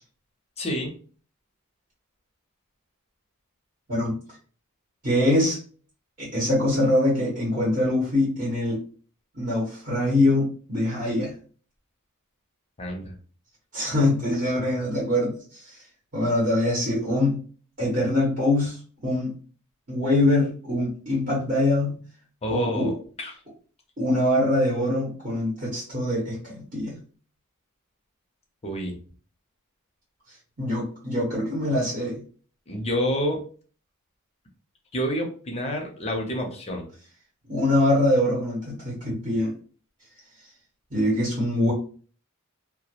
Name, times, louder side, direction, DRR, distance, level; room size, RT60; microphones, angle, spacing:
voice 1, 0.6-0.9 12.8-13.1 22.4-22.9 23.2-23.3 28.6-28.9 32.7-33.4 34.9-36.9, equal, 30° left, 2 dB, 0.6 m, -28 dB
voice 2, 5.0-5.6 6.2-8.8 9.3-11.3 13.7-15.8 16.1-17.4 17.8-19.3 19.9-22.0 22.5-22.9 24.0-27.0 30.6-32.2 37.5-39.5 40.9-41.7, left 1 dB, 40° right, -6 dB, 0.9 m, -23 dB
2.2 x 2.0 x 2.8 m, 0.42 s
head